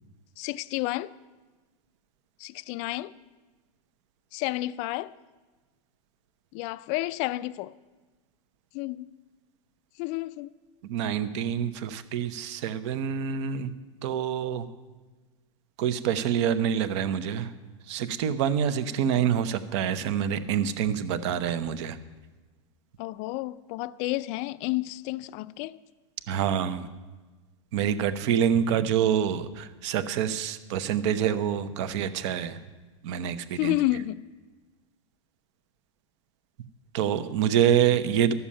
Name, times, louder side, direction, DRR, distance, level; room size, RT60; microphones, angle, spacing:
voice 1, 0.4-1.1 2.4-3.1 4.3-5.1 6.5-7.7 8.7-9.1 10.0-10.5 23.0-25.8 33.6-34.3, left 18 dB, 40° left, 0.4 m, -30 dB
voice 2, 10.8-13.7 14.0-14.7 15.8-17.5 17.9-22.0 26.3-26.9 27.7-32.6 33.0-33.8 36.9-38.3, right 9 dB, 60° right, 0.9 m, -26 dB
12.5 x 7.0 x 8.7 m
supercardioid pair, 145°, 17 cm